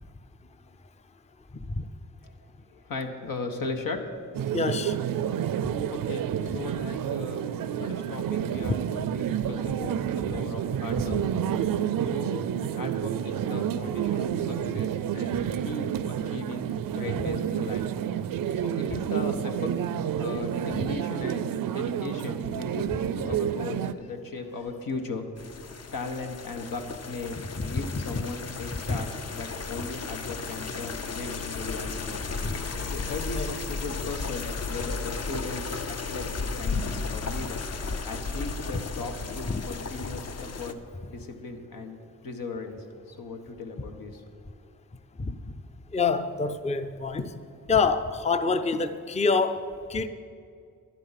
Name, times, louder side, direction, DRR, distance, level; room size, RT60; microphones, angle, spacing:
voice 1, 2.7-4.0 5.9-7.5 7.8-11.2 12.0-17.8 18.6-19.8 20.2-25.3 25.9-32.2 32.9-37.6 38.0-40.8 41.1-44.2, left 3 dB, 85° left, 4 dB, 1.4 m, -37 dB
sound 1, 4.3-23.9, right 9 dB, 75° right, 0.5 m, -29 dB
voice 2, 4.5-5.0 11.1-11.2 27.6-28.2 28.9-29.0 32.4-32.6 33.3-33.5 39.5-39.6 45.2-45.4 45.9-47.3 47.7-50.1, left 4 dB, 20° left, 10 dB, 0.5 m, -27 dB
sound 2, 25.4-40.7, left 4 dB, 50° left, 0.8 m, -34 dB
12.0 x 11.0 x 5.8 m, 2.3 s
cardioid pair, 85°, 33 cm